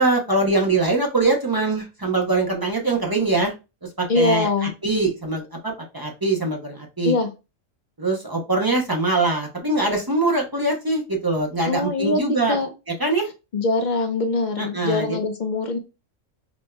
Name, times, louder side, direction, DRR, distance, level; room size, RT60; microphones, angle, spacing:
voice 1, 0.0-3.5 4.0-7.1 8.0-12.6 12.9-13.3 14.6-15.2, right 2 dB, 25° right, 0.6 m, -23 dB
voice 2, 4.1-4.7 7.0-7.3 11.7-12.7 13.5-15.8, left 3 dB, 55° left, 0.5 m, -23 dB
5.1 x 2.6 x 2.2 m
omnidirectional pair, 1.3 m